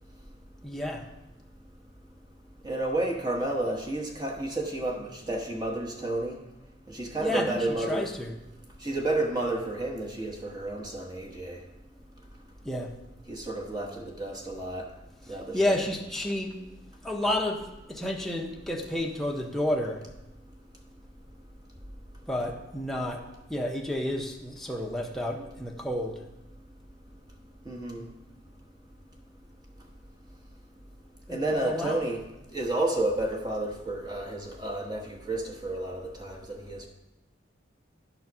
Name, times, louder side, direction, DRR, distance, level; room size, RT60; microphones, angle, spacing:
voice 1, 0.6-1.1 7.2-8.3 12.6-12.9 15.5-16.6 17.0-20.0 22.3-26.2 31.3-32.0, left 1 dB, ahead, 0 dB, 0.8 m, -31 dB
voice 2, 2.6-6.4 6.9-8.1 8.8-11.6 13.3-14.9 15.3-15.8 27.6-28.0 31.3-32.2 32.5-36.9, right 2 dB, 20° right, 0 dB, 1.1 m, -31 dB
10.5 x 4.0 x 6.0 m, 0.95 s
head